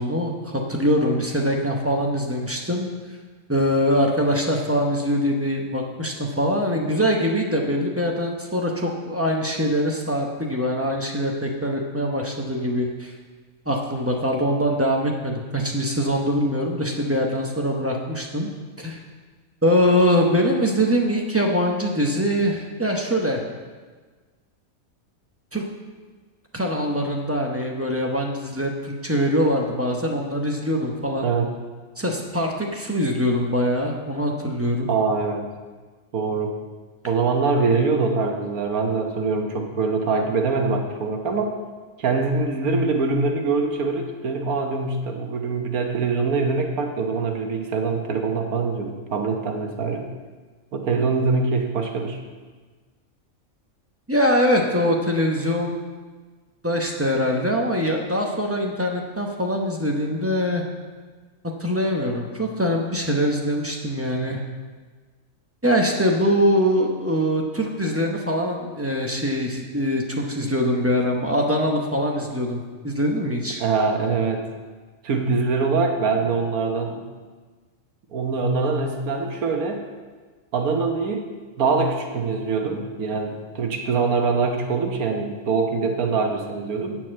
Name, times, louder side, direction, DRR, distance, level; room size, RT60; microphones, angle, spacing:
voice 1, 0.0-2.9 3.5-13.1 13.7-18.5 18.8-19.0 19.6-23.4 25.5-25.6 26.5-31.3 32.0-34.9 54.1-55.8 56.6-60.6 61.6-64.4 65.6-73.6, equal, 15° right, 0 dB, 0.7 m, -23 dB
voice 2, 31.2-31.5 34.9-35.5 36.1-36.6 37.1-41.6 42.0-50.1 50.7-52.2 73.6-74.4 75.0-77.0 78.1-79.8 80.5-81.3 81.6-87.0, right 4 dB, 85° right, 3 dB, 1.5 m, -23 dB
8.9 x 4.6 x 7.4 m, 1.4 s
omnidirectional pair, 1.5 m